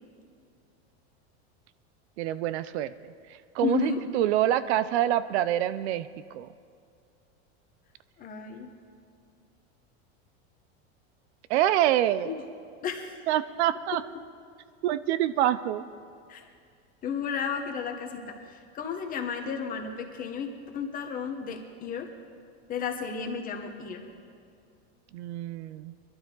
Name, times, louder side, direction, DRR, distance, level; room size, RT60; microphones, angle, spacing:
voice 1, 2.2-3.1 3.5-6.1 6.3-6.5 11.5-12.3 13.3-14.0 14.8-15.8 25.1-25.9, right 12 dB, 75° right, 15 dB, 0.6 m, -26 dB
voice 2, 3.6-4.0 8.2-8.7 12.2-12.4 12.8-13.2 16.3-16.4 17.0-20.5 20.7-22.1 22.7-24.0, left 6 dB, 25° left, 4 dB, 1.3 m, -33 dB
21.0 x 12.0 x 3.9 m, 2.3 s
supercardioid pair, 155°, 33 cm